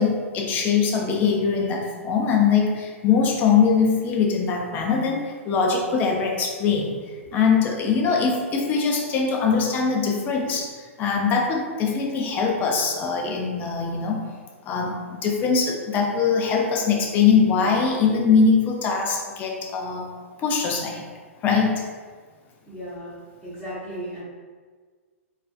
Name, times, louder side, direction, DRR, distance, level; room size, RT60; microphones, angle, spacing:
voice 1, 0.0-14.2 14.6-20.1 20.4-21.0 21.4-21.8, left 5 dB, 25° left, 0 dB, 0.4 m, -22 dB
voice 2, 22.7-23.2 23.4-24.2, equal, 5° right, -14 dB, 0.7 m, -35 dB
2.5 x 2.3 x 2.3 m, 1.5 s
figure-of-eight pair, 115°, 8 cm